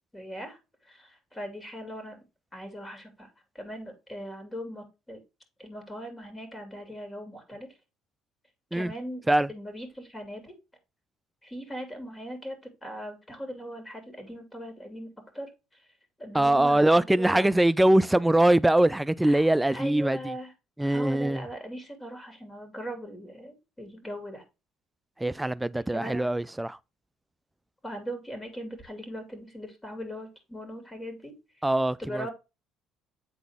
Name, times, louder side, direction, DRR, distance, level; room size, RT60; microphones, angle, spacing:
voice 1, 0.1-0.6 0.8-2.2 2.5-5.2 5.6-7.7 8.7-9.2 9.5-10.5 11.4-15.5 16.2-17.5 19.2-20.5 20.8-24.4 25.9-26.3 27.8-31.7 32.0-32.3, equal, 15° left, 2.5 m, -40 dB
voice 2, 16.3-20.2 20.8-21.4 25.2-26.8 31.6-32.3, right 1 dB, 10° right, 0.3 m, -22 dB
8.3 x 4.0 x 3.5 m
supercardioid pair, 90°, 0 cm